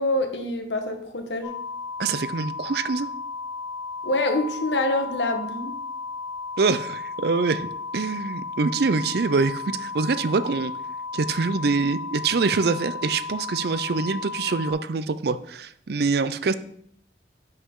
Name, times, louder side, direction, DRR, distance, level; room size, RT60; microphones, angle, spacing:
voice 1, 0.0-1.6 4.0-5.8, left 2 dB, 75° left, 6 dB, 1.2 m, -26 dB
sound 1, 1.4-14.7, left 4 dB, 5° left, 3.1 m, -34 dB
voice 2, 2.0-3.1 6.6-7.7 7.9-10.7 11.1-16.5, right 4 dB, 60° right, 14 dB, 0.5 m, -24 dB
11.0 x 5.7 x 3.7 m, 0.70 s
head